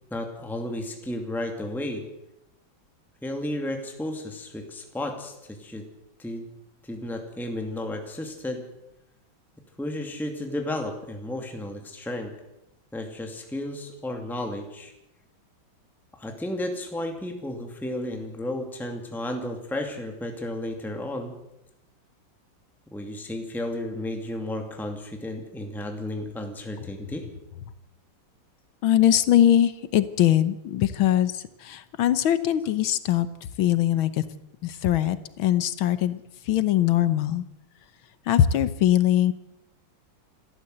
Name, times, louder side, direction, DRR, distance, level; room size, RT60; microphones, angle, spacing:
voice 1, 0.1-2.1 3.2-5.9 6.2-6.5 6.8-8.7 9.8-12.3 12.9-14.9 16.2-21.4 22.9-27.3, left 1 dB, ahead, 3 dB, 2.2 m, -33 dB
voice 2, 28.8-31.3 31.6-33.3 33.6-34.2 34.6-36.2 36.5-37.4 38.3-39.3, left 11 dB, 80° left, 13 dB, 1.8 m, -21 dB
26.5 x 13.0 x 7.9 m, 0.89 s
omnidirectional pair, 2.2 m